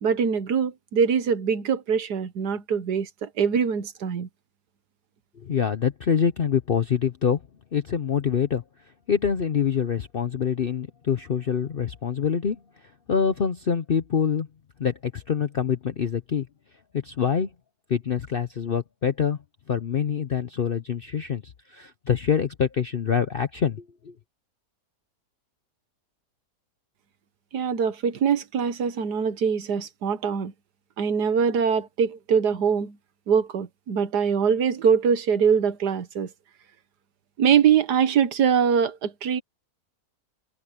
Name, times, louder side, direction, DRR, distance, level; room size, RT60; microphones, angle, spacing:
voice 1, 0.0-4.3 27.5-30.5 31.0-33.0 33.3-36.3 37.4-39.4, right 7 dB, 70° right, 1.7 m, -23 dB
voice 2, 5.4-7.4 7.7-8.6 9.1-12.6 13.1-14.5 14.8-16.5 16.9-17.5 17.9-19.4 19.7-21.4 21.7-24.1, left 7 dB, 50° left, 0.6 m, -25 dB
omnidirectional pair, 1.8 m